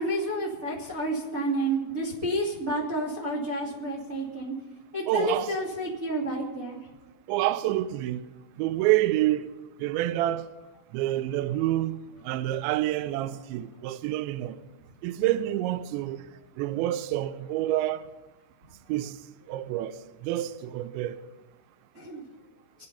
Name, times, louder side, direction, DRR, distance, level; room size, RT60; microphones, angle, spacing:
voice 1, 0.0-4.5 4.9-6.8 21.9-22.2, right 1 dB, 25° right, 2.3 m, -30 dB
voice 2, 5.1-5.6 7.3-8.2 8.6-9.5 9.8-10.5 10.9-12.0 12.2-14.6 15.0-16.2 16.6-18.0 18.9-19.2 19.5-21.2, right 14 dB, 80° right, 2.8 m, -27 dB
25.5 x 8.7 x 5.6 m
omnidirectional pair, 5.5 m